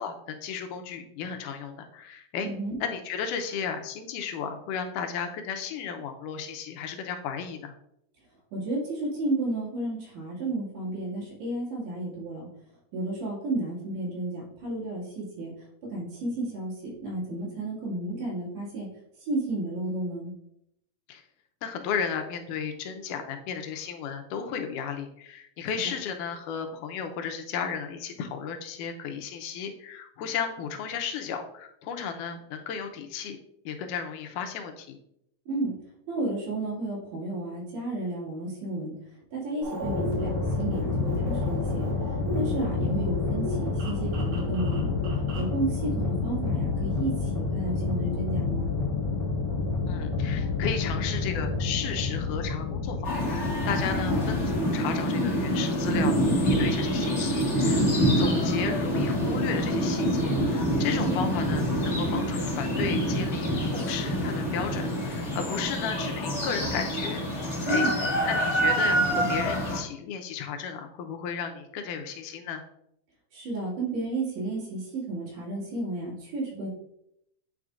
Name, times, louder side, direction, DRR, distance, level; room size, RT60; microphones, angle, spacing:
voice 1, 0.0-2.5 2.8-7.7 21.1-21.2 21.6-33.4 33.7-35.0 49.9-57.9 58.2-67.9 68.3-72.6, left 7 dB, 85° left, 6 dB, 2.2 m, -34 dB
voice 2, 2.4-2.8 8.5-12.5 12.9-15.5 15.9-18.9 19.2-20.3 35.5-35.7 36.1-38.9 39.3-40.3 40.6-41.9 42.3-44.9 45.4-48.8 61.1-61.2 67.7-68.0 73.3-76.7, right 2 dB, 80° right, -6 dB, 3.5 m, -32 dB
sound 1, 39.6-45.6, equal, 55° right, 2.0 m, -36 dB
sound 2, 39.8-54.5, left 4 dB, 40° left, 1.1 m, -29 dB
sound 3, 53.0-69.8, equal, 55° left, 0.7 m, -26 dB
9.3 x 4.3 x 2.4 m, 0.77 s
omnidirectional pair, 3.6 m